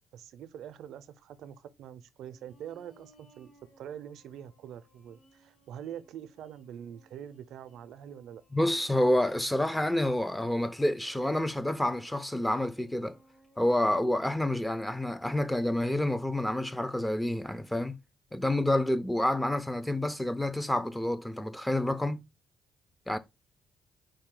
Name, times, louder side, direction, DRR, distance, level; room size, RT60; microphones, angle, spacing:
voice 1, 0.1-3.5 3.8-8.4, right 9 dB, 80° right, 0.5 m, -44 dB
sound 1, 2.2-17.0, right 1 dB, 50° left, 2.9 m, -64 dB
voice 2, 8.5-13.2 13.6-18.0 18.3-22.2 23.1-23.2, left 1 dB, 5° left, 0.5 m, -28 dB
4.8 x 2.7 x 3.7 m
cardioid pair, 90°, 0 cm